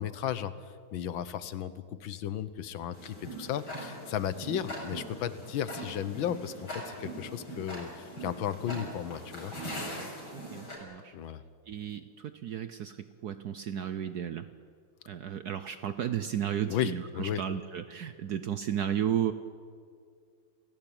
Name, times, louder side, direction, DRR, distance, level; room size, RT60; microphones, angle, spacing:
voice 1, 0.0-9.5 11.1-11.4 16.7-17.4, left 10 dB, 80° left, 14 dB, 1.8 m, -35 dB
Tick-tock, 2.9-10.8, equal, 55° left, 6.4 m, -41 dB
voice 2, 10.3-11.1 11.7-13.0 13.2-14.4 15.1-19.3, right 9 dB, 65° right, 11 dB, 1.1 m, -33 dB
28.0 x 16.5 x 8.9 m, 2.2 s
omnidirectional pair, 2.1 m